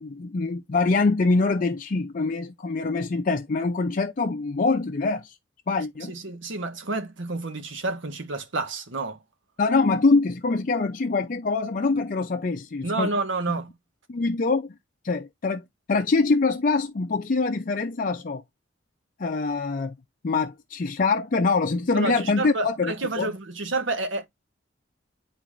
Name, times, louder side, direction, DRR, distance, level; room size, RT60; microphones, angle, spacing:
voice 1, 0.0-5.3 5.7-6.1 9.6-13.1 14.1-14.7 15.0-15.6 15.9-18.4 19.2-19.9 20.2-23.3, left 3 dB, 45° left, 0.5 m, -24 dB
voice 2, 6.1-9.2 12.8-13.7 21.9-24.3, right 2 dB, 75° right, 1.2 m, -29 dB
10.0 x 4.0 x 2.5 m
head